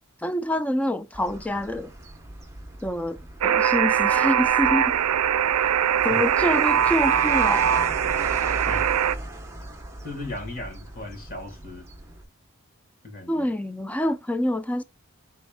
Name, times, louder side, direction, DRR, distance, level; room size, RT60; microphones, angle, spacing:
voice 1, 0.2-1.9 2.8-5.0 6.0-7.7 13.3-14.8, left 1 dB, 5° left, 0.4 m, -26 dB
sound 1, 1.1-12.2, right 1 dB, 10° right, 1.0 m, -38 dB
Alarm, 3.4-9.1, right 9 dB, 90° right, 0.4 m, -22 dB
voice 2, 10.0-11.9 13.0-13.5, left 2 dB, 40° left, 1.7 m, -37 dB
5.2 x 4.4 x 2.3 m
head